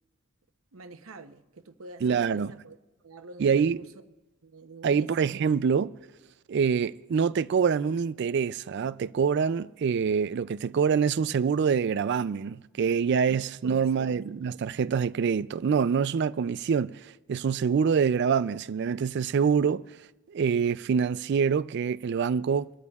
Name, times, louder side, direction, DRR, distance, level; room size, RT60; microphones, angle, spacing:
voice 1, 0.7-2.8 3.0-4.0 4.4-5.1 13.3-14.3, right 3 dB, 80° right, 0.8 m, -47 dB
voice 2, 2.0-2.5 3.4-3.8 4.8-5.9 6.5-19.8 20.3-22.7, right 6 dB, 55° right, 0.3 m, -25 dB
24.5 x 13.5 x 2.4 m
head